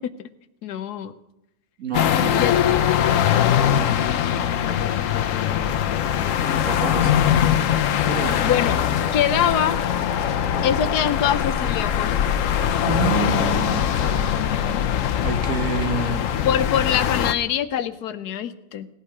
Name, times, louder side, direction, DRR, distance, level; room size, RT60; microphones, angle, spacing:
voice 1, 0.6-1.1 2.4-2.6 3.7-6.5 8.4-8.7 9.1-9.8 10.6-12.4 14.3-14.9 16.4-18.9, left 9 dB, 90° left, 12 dB, 1.3 m, -25 dB
voice 2, 1.8-2.8 6.6-7.2 8.1-8.5 12.9-14.3 15.2-16.3, right 6 dB, 60° right, 5 dB, 1.9 m, -28 dB
sound 1, 1.9-17.3, left 9 dB, 65° left, 1.0 m, -22 dB
18.0 x 11.5 x 4.8 m, 0.90 s
omnidirectional pair, 1.6 m